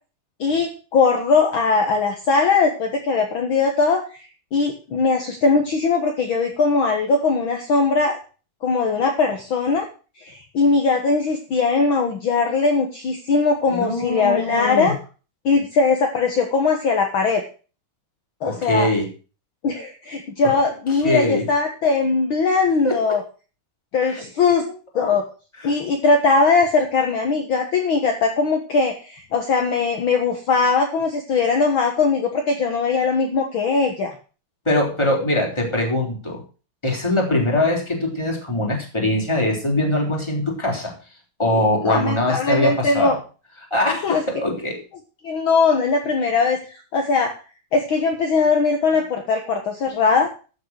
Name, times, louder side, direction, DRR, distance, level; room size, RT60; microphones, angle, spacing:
voice 1, 0.4-4.3 4.5-8.2 8.6-9.9 10.2-14.9 15.4-17.4 18.4-18.9 19.6-23.2 23.9-24.6 24.9-25.2 25.6-34.1 41.8-43.2 44.0-44.2 45.2-47.3 47.7-50.3, left 4 dB, 55° left, 3 dB, 1.5 m, -20 dB
voice 2, 13.7-14.9 18.4-19.1 21.0-21.4 22.8-23.0 24.1-25.1 25.6-25.7 34.7-36.4 36.8-40.9 41.4-43.2 43.7-44.8, left 1 dB, 5° left, 0 dB, 3.7 m, -22 dB
14.0 x 6.7 x 6.2 m, 0.35 s
omnidirectional pair, 4.2 m